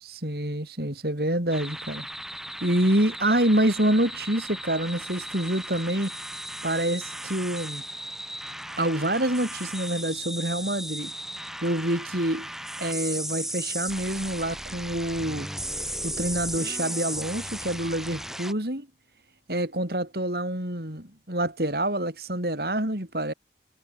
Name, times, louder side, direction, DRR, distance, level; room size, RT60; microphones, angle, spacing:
voice 1, 0.2-2.0 2.6-6.1 6.6-7.8 8.8-11.1 11.6-12.5 12.8-15.5 16.0-18.9 19.5-23.3, right 1 dB, 60° right, 4.8 m, -27 dB
sound 1, 1.5-18.5, right 1 dB, ahead, 3.6 m, -36 dB
head